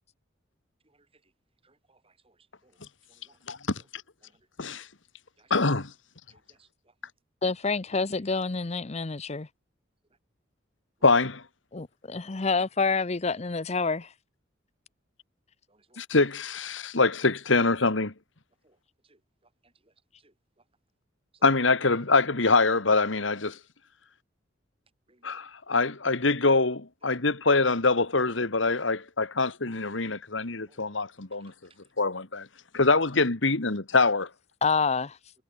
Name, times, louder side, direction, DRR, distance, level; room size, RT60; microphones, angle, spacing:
voice 1, 1.6-2.4 2.6-2.8 3.1-3.4 4.2-4.3 5.4-5.5 6.3-6.7 12.1-12.3 15.7-16.0 18.6-18.8 19.1-19.2 19.6-19.7 20.2-20.3 21.3-21.4 25.1-25.4 30.7-31.0 31.5-31.6, right 2 dB, 30° right, 7.1 m, -64 dB
voice 2, 3.5-3.8 4.6-4.9 5.5-5.9 11.0-11.4 16.0-18.1 21.4-23.6 25.2-31.5 32.0-32.5 32.7-34.3, left 3 dB, 80° left, 2.0 m, -24 dB
voice 3, 7.4-9.5 11.7-14.1 34.6-35.2, left 4 dB, 35° left, 0.7 m, -27 dB
head